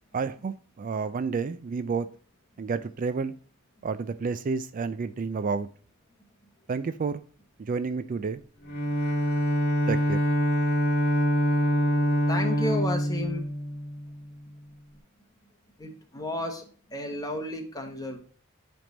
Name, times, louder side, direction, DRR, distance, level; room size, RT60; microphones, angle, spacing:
voice 1, 0.1-2.1 2.6-3.3 3.8-5.7 6.7-7.2 7.6-8.4 9.9-10.2, right 5 dB, 40° right, 0.3 m, -30 dB
Bowed string instrument, 8.6-14.3, equal, 50° left, 1.4 m, -25 dB
voice 2, 12.3-13.5 15.8-18.2, left 2 dB, 20° left, 1.3 m, -33 dB
9.0 x 3.5 x 3.9 m
head